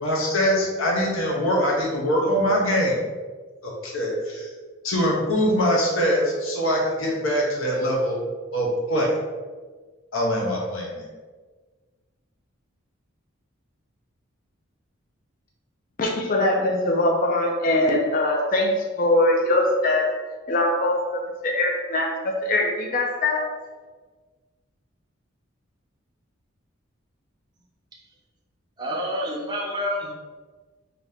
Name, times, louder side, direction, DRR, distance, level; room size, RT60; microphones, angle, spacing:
voice 1, 0.0-3.0 3.6-4.5 4.8-8.2 8.5-9.2 10.1-11.0, equal, 70° left, -3 dB, 0.9 m, -23 dB
voice 2, 16.0-20.2 20.5-23.5, left 1 dB, 40° left, 1 dB, 0.4 m, -22 dB
voice 3, 28.8-30.1, equal, 20° right, -3 dB, 0.5 m, -28 dB
4.1 x 2.7 x 3.4 m, 1.4 s
head